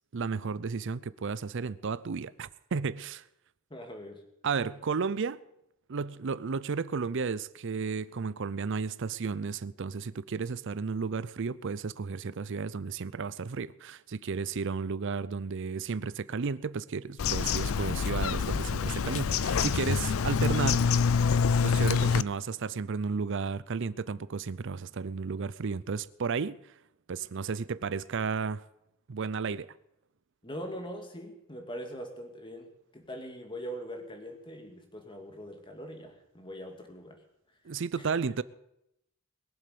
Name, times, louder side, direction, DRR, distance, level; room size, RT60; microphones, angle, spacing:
voice 1, 0.1-3.2 4.4-5.4 5.9-20.9 21.6-26.6 27.1-28.6 29.1-29.7 37.6-38.4, right 5 dB, 60° right, 0.5 m, -33 dB
voice 2, 3.7-4.2 30.4-37.2 38.0-38.2, equal, 25° left, 2.3 m, -42 dB
Bird vocalization bird call bird song, 17.2-22.2, left 5 dB, 75° left, 0.5 m, -26 dB
21.5 x 7.6 x 6.9 m
head